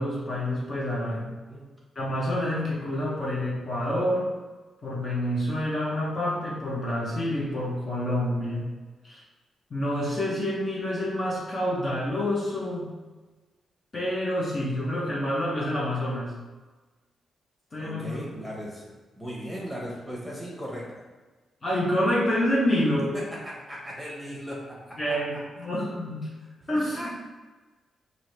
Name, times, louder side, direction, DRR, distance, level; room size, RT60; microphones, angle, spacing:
voice 1, 0.0-1.3 1.9-4.3 4.8-8.6 9.0-9.2 9.7-12.9 13.9-16.3 17.7-18.1 21.6-23.1 25.0-26.3 26.7-27.1, left 1 dB, 35° left, -6 dB, 0.9 m, -27 dB
voice 2, 1.0-1.7 17.8-18.9 19.2-21.0 23.0-25.2 26.9-27.2, equal, 5° right, -5 dB, 1.2 m, -37 dB
4.6 x 2.6 x 3.3 m, 1.3 s
cardioid pair, 115°, 0 cm